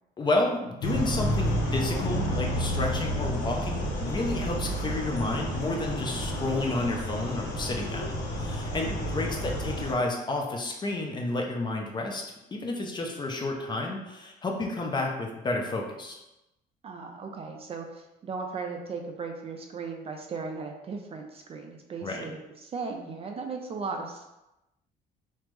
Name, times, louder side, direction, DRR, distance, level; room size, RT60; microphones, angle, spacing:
voice 1, 0.2-12.2 12.5-16.2 22.0-22.3, left 2 dB, 25° left, 1 dB, 0.5 m, -31 dB
sound 1, 0.8-9.9, equal, 85° left, 0.6 m, -30 dB
voice 2, 8.9-9.3 16.8-24.2, right 4 dB, 35° right, 3 dB, 0.4 m, -37 dB
3.3 x 2.0 x 3.1 m, 0.94 s
cardioid pair, 110°, 17 cm